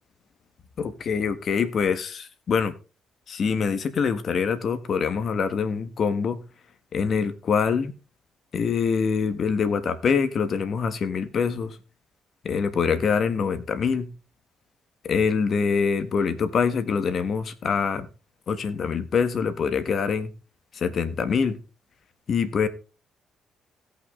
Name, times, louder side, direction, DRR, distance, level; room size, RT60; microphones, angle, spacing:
voice 1, 0.8-2.7 3.3-6.4 6.9-7.9 8.5-11.8 12.4-14.1 15.0-18.1 18.5-20.3 20.7-21.6 22.3-22.7, left 6 dB, 55° left, 11 dB, 1.5 m, -24 dB
17.0 x 5.8 x 3.7 m, 0.32 s
cardioid pair, 90°, 0 cm